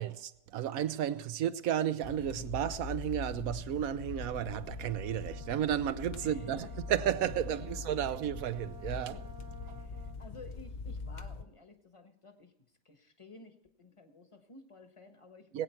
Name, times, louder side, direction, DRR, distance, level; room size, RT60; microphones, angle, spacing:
voice 1, 0.0-9.2 9.7-9.8 15.5-15.6, right 10 dB, 70° right, 1.1 m, -33 dB
sound 1, 2.0-11.4, left 4 dB, 65° left, 0.4 m, -43 dB
Brass instrument, 4.4-10.2, right 4 dB, 55° right, 1.2 m, -53 dB
voice 2, 6.1-6.7 7.6-7.7 9.1-9.3 9.6-12.5 12.8-15.6, left 2 dB, 20° left, 1.1 m, -54 dB
21.0 x 8.9 x 4.5 m
omnidirectional pair, 1.6 m